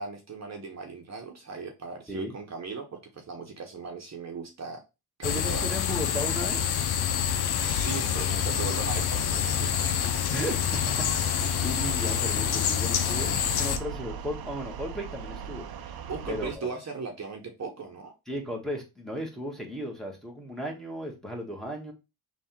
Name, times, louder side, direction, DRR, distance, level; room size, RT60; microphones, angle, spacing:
voice 1, 0.0-4.8 5.2-5.7 7.6-10.1 11.4-11.5 12.0-12.2 15.8-18.1, right 4 dB, 40° right, 2 dB, 1.0 m, -38 dB
sound 1, 5.2-13.8, left 9 dB, 70° left, 0.7 m, -27 dB
voice 2, 5.2-6.7 8.1-8.2 10.3-15.7 16.3-16.7 18.3-21.9, equal, ahead, -1 dB, 1.4 m, -36 dB
sound 2, 8.8-16.6, right 6 dB, 65° right, 0.7 m, -40 dB
3.4 x 2.6 x 4.4 m, 0.26 s
cardioid pair, 80°, 40 cm